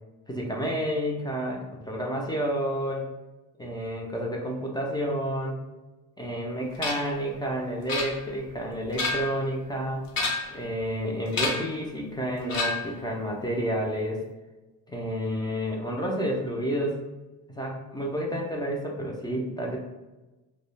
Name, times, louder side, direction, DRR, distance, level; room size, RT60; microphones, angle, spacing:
voice 1, 0.3-3.1 3.6-5.6 6.2-10.0 10.5-14.2 14.9-17.0 17.5-19.8, equal, 15° left, -1 dB, 0.3 m, -30 dB
sound 1, 6.8-7.2 7.9-8.5 8.8-9.4 10.1-10.6 11.3-11.8 12.5-13.0, left 3 dB, 90° left, 0.7 m, -29 dB
2.2 x 2.0 x 3.1 m, 1.1 s
cardioid pair, 120°, 34 cm